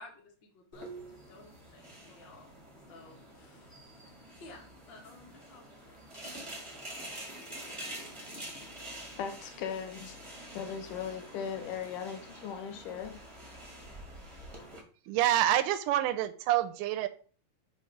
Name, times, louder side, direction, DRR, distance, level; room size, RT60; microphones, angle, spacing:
voice 1, 0.0-2.5 2.9-4.0 4.4-5.7 6.2-6.3, left 2 dB, 50° left, 1.4 m, -54 dB
sound 1, 0.7-14.8, right 1 dB, 45° right, 0.3 m, -47 dB
voice 2, 9.2-10.2 10.5-13.2, left 7 dB, 75° left, 2.2 m, -38 dB
voice 3, 15.1-17.1, right 13 dB, 80° right, 1.9 m, -27 dB
7.2 x 2.9 x 5.7 m
omnidirectional pair, 4.0 m